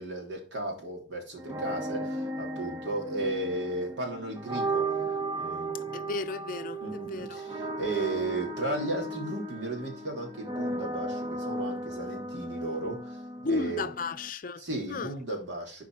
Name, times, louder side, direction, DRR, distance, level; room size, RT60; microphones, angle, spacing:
voice 1, 0.0-4.9 5.4-6.0 6.8-13.2 13.5-13.9 14.6-15.8, right 2 dB, 70° right, 3.0 m, -35 dB
sound 1, 1.4-14.3, right 2 dB, 20° right, 0.8 m, -35 dB
voice 2, 5.9-7.4 13.4-15.1, left 4 dB, 50° left, 0.6 m, -34 dB
7.4 x 4.9 x 4.8 m
head